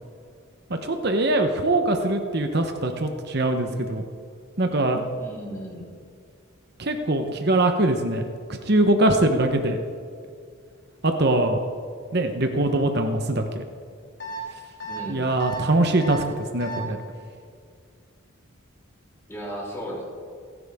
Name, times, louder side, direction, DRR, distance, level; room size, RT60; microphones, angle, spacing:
voice 1, 0.7-4.0 4.6-5.0 6.8-8.2 8.7-9.8 11.0-11.6 12.1-13.6 15.1-17.0, right 2 dB, 50° right, 5 dB, 1.0 m, -22 dB
voice 2, 5.2-5.9 14.8-15.3 19.3-20.0, equal, 15° left, -5 dB, 3.7 m, -35 dB
sound 1, 14.2-14.4 14.8-15.0 15.4-15.6 16.0-16.2 16.6-16.8, left 1 dB, 60° left, 4.0 m, -34 dB
28.5 x 11.0 x 3.7 m, 2.2 s
head